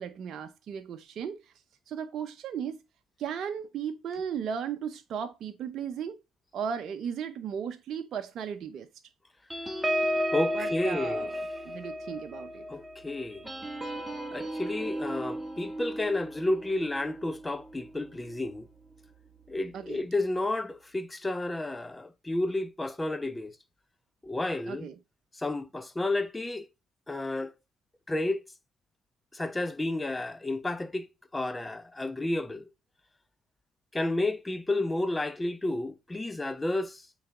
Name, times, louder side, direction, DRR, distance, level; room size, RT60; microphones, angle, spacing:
voice 1, 0.0-1.5 1.9-2.8 3.2-6.2 6.5-8.9 10.5-12.6 19.7-20.0 24.7-25.0, right 7 dB, 60° right, 0.7 m, -36 dB
sound 1, 9.5-18.4 18.9-19.1 19.4-19.7, equal, 5° right, 2.5 m, -34 dB
voice 2, 10.3-11.3 12.7-13.4 14.3-18.7 19.5-23.5 24.2-24.9 25.3-26.6 27.1-27.5 28.1-28.4 29.3-31.1 31.3-32.7 33.9-37.0, left 2 dB, 20° left, 1.0 m, -31 dB
8.8 x 4.0 x 3.7 m
hypercardioid pair, 60°, 0 cm